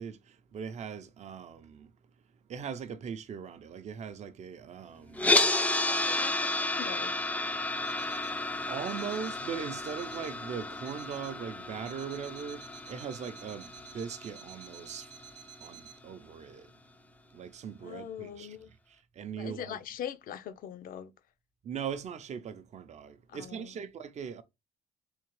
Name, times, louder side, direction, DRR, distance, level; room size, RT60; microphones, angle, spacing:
voice 1, 0.0-1.9 2.5-5.5 6.0-6.2 8.2-8.4 8.7-15.1 15.6-16.7 17.3-18.6 18.9-19.8 21.6-24.4, right 7 dB, 40° right, 0.6 m, -40 dB
sound 1, 5.2-15.3, left 2 dB, 10° left, 0.4 m, -32 dB
voice 2, 6.0-7.1 17.8-18.7 19.3-21.1 23.3-23.7, left 9 dB, 55° left, 0.5 m, -42 dB
Alarm, 7.8-8.4 8.8-9.4 9.8-10.4 10.8-11.4 11.8-16.0, right 10 dB, 90° right, 0.7 m, -52 dB
3.5 x 2.8 x 3.1 m
cardioid pair, 110°, 17 cm